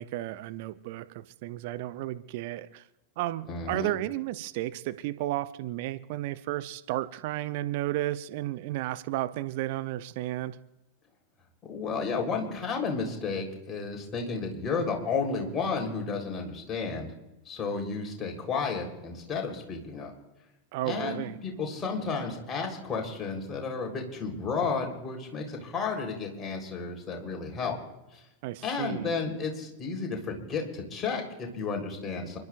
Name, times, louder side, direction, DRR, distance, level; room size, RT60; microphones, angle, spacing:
voice 1, 0.0-2.9 3.2-10.6 20.7-21.4 28.4-29.1, right 15 dB, 50° right, 12 dB, 0.6 m, -33 dB
voice 2, 3.5-3.9 11.7-17.1 17.5-20.1 20.8-27.8 28.1-28.2 28.6-32.4, left 4 dB, 25° left, 1 dB, 3.9 m, -32 dB
29.5 x 12.0 x 2.5 m, 0.99 s
figure-of-eight pair, 90°, 0 cm